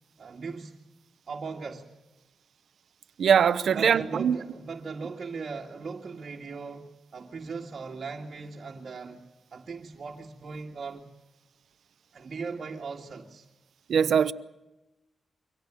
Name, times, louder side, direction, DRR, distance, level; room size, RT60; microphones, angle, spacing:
voice 1, 0.2-0.7 1.3-1.9 3.7-9.2 9.5-11.1 12.1-13.5, right 4 dB, 55° right, 2.1 m, -38 dB
voice 2, 3.2-4.4 13.9-14.3, right 7 dB, 80° right, 0.8 m, -22 dB
24.5 x 17.5 x 9.0 m
cardioid pair, 70°, 0 cm